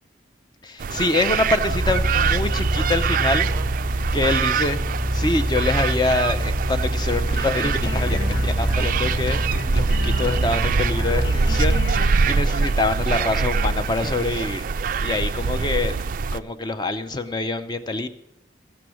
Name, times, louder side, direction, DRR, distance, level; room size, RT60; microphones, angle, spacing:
voice 1, 0.6-3.5 4.1-4.8 5.1-9.4 9.7-14.7 15.0-16.0 16.3-18.1, left 2 dB, 25° left, 10 dB, 0.5 m, -25 dB
sound 1, 0.8-16.4, right 5 dB, 45° right, 0.3 m, -24 dB
sound 2, 1.6-11.9, equal, ahead, 1.1 m, -26 dB
sound 3, 7.3-12.8 13.1-13.3 13.6-13.8, left 1 dB, 65° left, 1.0 m, -34 dB
14.5 x 6.9 x 6.1 m, 0.82 s
head